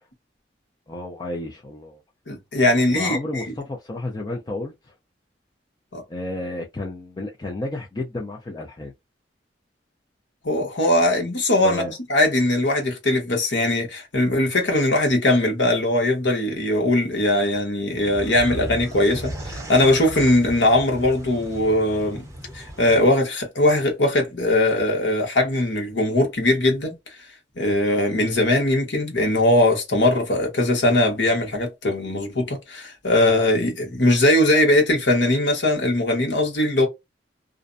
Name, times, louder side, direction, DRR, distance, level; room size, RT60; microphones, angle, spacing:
voice 1, 0.9-2.0 2.9-4.9 6.1-8.9 11.6-11.9, left 2 dB, 25° left, 0.4 m, -32 dB
voice 2, 2.3-3.4 5.9-6.0 10.4-11.8 12.1-22.3 22.5-26.9 27.6-36.9, left 1 dB, 90° left, 1.0 m, -20 dB
sound 1, 18.0-23.1, right 1 dB, 15° right, 0.7 m, -36 dB
2.5 x 2.1 x 2.5 m
head